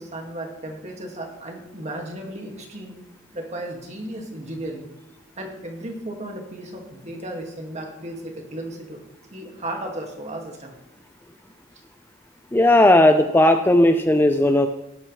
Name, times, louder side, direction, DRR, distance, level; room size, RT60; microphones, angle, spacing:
voice 1, 0.0-3.0 3.3-4.9 5.4-9.0 9.3-10.8, right 1 dB, 35° right, 1 dB, 2.2 m, -34 dB
voice 2, 12.5-14.7, left 1 dB, 10° left, 7 dB, 0.5 m, -16 dB
17.5 x 9.1 x 3.3 m, 0.92 s
head